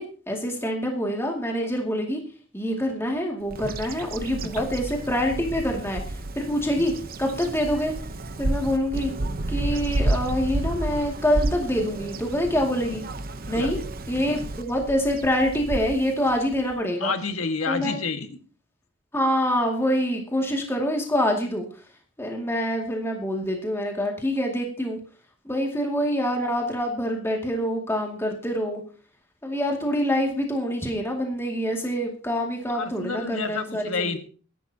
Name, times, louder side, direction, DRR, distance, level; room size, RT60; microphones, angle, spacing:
voice 1, 0.0-2.2 2.5-6.0 6.4-6.9 7.2-7.9 8.4-9.1 9.5-13.0 13.5-13.8 14.1-17.1 17.7-18.0 19.1-21.7 22.2-25.0 25.5-28.8 29.4-34.1, equal, 10° left, 1 dB, 2.3 m, -26 dB
Bird vocalization bird call bird song, 3.5-16.8, right 2 dB, 45° right, 0.8 m, -31 dB
voice 2, 17.0-18.3 32.8-34.2, left 4 dB, 85° left, 7 dB, 1.8 m, -29 dB
22.0 x 11.5 x 2.9 m, 0.38 s
head